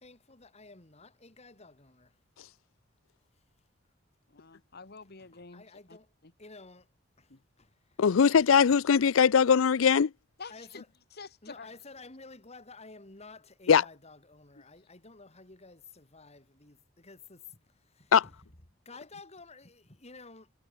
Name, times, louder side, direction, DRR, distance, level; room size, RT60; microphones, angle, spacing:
voice 1, 0.0-2.1 5.3-6.1 6.4-6.9 7.2-7.3 7.6-8.4 10.5-10.9 11.4-18.4 18.8-20.5, left 3 dB, 35° left, 3.1 m, -52 dB
voice 2, 4.3-6.3 7.3-7.4 10.4-10.8 11.1-11.7 14.6-14.7, left 4 dB, 55° left, 1.8 m, -48 dB
voice 3, 8.0-10.1 13.7-13.8 18.1-18.2, left 6 dB, 90° left, 0.5 m, -21 dB
head